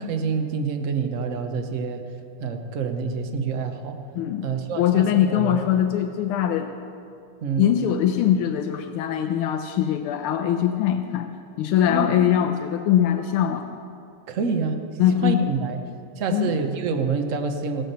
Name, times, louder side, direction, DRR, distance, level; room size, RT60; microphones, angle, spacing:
voice 1, 0.0-2.0 2.4-4.0 4.4-5.7 7.4-7.7 11.9-12.1 14.3-14.8 15.2-15.8 16.2-17.8, right 5 dB, 60° right, 6 dB, 0.8 m, -27 dB
voice 2, 4.1-6.7 7.6-11.3 11.6-13.8 15.0-15.4 16.3-16.5, left 10 dB, 85° left, 7 dB, 1.5 m, -22 dB
16.0 x 8.1 x 6.7 m, 2.6 s
omnidirectional pair, 2.4 m